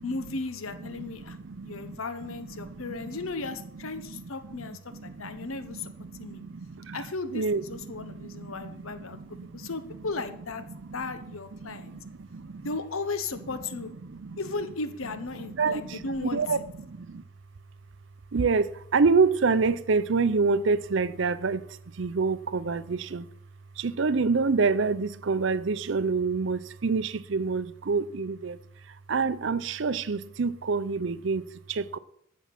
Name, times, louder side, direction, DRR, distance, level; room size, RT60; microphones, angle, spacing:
voice 1, 0.0-5.9 6.2-6.4 6.9-10.6 10.9-12.0 12.6-13.9 14.4-16.4, left 3 dB, 85° left, 1.0 m, -36 dB
voice 2, 0.9-2.0 2.3-3.2 3.8-7.0 7.3-9.7 10.7-10.9 11.6-12.7 14.0-14.4 15.5-17.2 18.3-23.3 23.8-28.6 28.8-32.0, right 4 dB, 60° right, 0.5 m, -28 dB
14.0 x 7.2 x 5.9 m
head